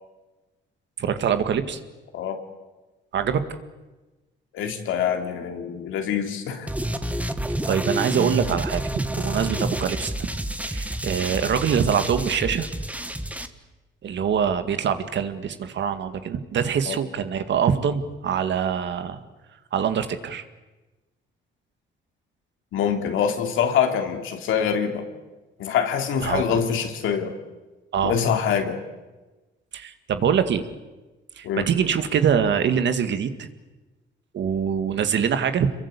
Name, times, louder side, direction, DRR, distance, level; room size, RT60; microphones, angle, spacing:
voice 1, 1.0-1.8 3.1-3.4 7.7-8.8 9.2-10.1 10.6-12.7 14.0-19.2 19.7-20.4 26.2-26.6 27.9-28.1 29.7-30.6 31.4-33.5 34.3-35.7, right 7 dB, 65° right, 9 dB, 2.1 m, -24 dB
voice 2, 4.5-6.7 16.9-17.0 22.7-25.1 25.6-27.3 28.0-28.8 31.4-31.7, left 8 dB, 85° left, 5 dB, 3.2 m, -25 dB
sound 1, 6.7-13.5, right 1 dB, 5° right, 1.7 m, -29 dB
27.0 x 22.5 x 8.4 m, 1.2 s
cardioid pair, 90°, 20 cm